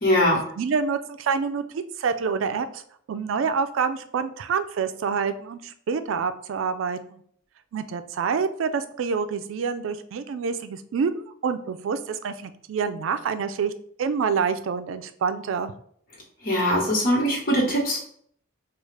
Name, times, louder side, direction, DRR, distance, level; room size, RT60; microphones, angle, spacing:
voice 1, 0.0-0.4 16.4-18.0, equal, 50° left, -3 dB, 1.3 m, -21 dB
voice 2, 0.6-2.8 3.1-7.2 7.7-13.7 14.0-15.7, right 6 dB, 85° right, 10 dB, 0.3 m, -27 dB
4.7 x 2.4 x 3.2 m, 0.64 s
head